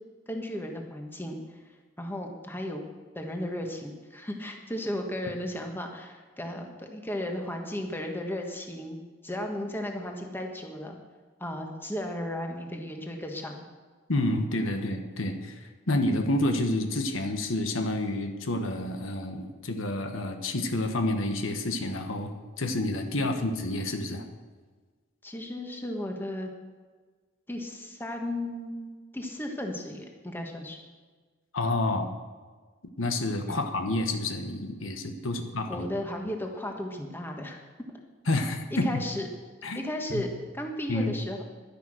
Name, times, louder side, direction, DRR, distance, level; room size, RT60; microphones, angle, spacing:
voice 1, 0.3-1.6 2.0-2.8 3.1-11.0 11.4-13.7 23.2-23.3 25.2-26.5 27.5-30.8 33.5-33.6 35.7-37.6 38.7-39.3 39.7-41.4, left 1 dB, 10° left, 2 dB, 1.4 m, -35 dB
voice 2, 14.1-22.3 22.6-24.2 31.5-32.1 33.0-35.9 38.3-39.0 39.6-39.8 40.1-40.3 40.9-41.1, left 1 dB, 80° left, 5 dB, 1.4 m, -29 dB
12.0 x 10.5 x 6.4 m, 1.4 s
head